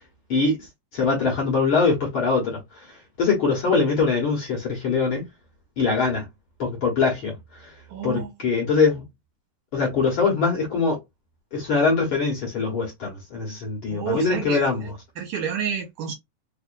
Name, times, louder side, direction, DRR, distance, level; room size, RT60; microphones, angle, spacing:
voice 1, 0.9-2.6 3.2-5.2 5.8-6.3 6.6-7.3 8.0-9.0 9.7-11.0 11.5-14.8, left 4 dB, 55° left, 1.7 m, -22 dB
voice 2, 7.9-8.3 13.9-14.9 15.2-16.1, right 8 dB, 70° right, 2.2 m, -30 dB
4.8 x 2.5 x 2.5 m
omnidirectional pair, 3.6 m